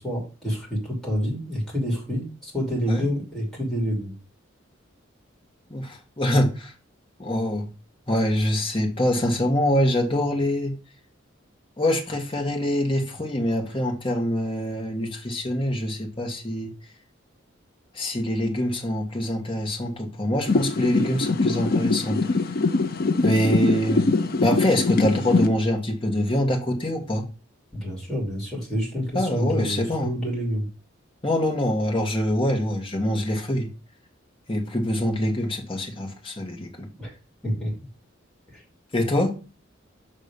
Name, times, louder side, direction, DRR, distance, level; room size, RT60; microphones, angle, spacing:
voice 1, 0.0-4.1 27.7-30.7 37.0-37.1 37.4-37.7 38.5-38.6, equal, ahead, 2.9 m, -28 dB
voice 2, 5.7-6.7 7.2-7.7 8.1-10.7 11.8-16.7 17.9-22.3 23.2-24.1 24.4-27.2 29.1-30.1 31.2-33.7 34.5-36.9 38.9-39.4, left 1 dB, 25° left, 1.4 m, -24 dB
sound 1, 20.5-25.5, left 3 dB, 50° left, 0.6 m, -23 dB
6.7 x 3.8 x 5.0 m
head